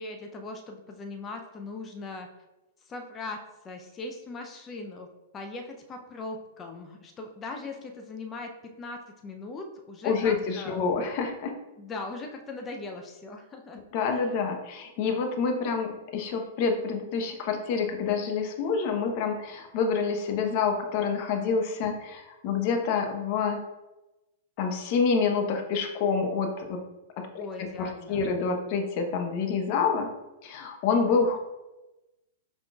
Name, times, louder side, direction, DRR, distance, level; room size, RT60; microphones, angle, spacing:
voice 1, 0.0-2.3 2.9-5.1 5.3-8.5 8.8-10.9 11.8-13.8 14.1-14.2 27.4-28.2, left 3 dB, 25° left, 4 dB, 0.5 m, -39 dB
voice 2, 10.0-11.5 13.9-23.6 24.6-26.8 27.2-30.1 30.4-31.4, left 5 dB, 50° left, 3 dB, 0.9 m, -27 dB
5.7 x 3.7 x 2.4 m, 1.0 s
hypercardioid pair, 110°, 0 cm